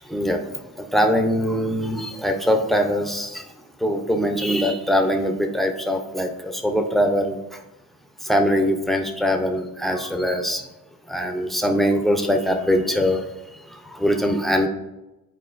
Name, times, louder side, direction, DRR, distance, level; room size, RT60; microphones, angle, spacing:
voice 1, 0.1-3.4 3.8-7.4 8.2-10.6 11.1-13.2 13.7-14.7, equal, ahead, 4 dB, 0.6 m, -22 dB
9.9 x 4.5 x 2.5 m, 0.96 s
cardioid pair, 145°, 33 cm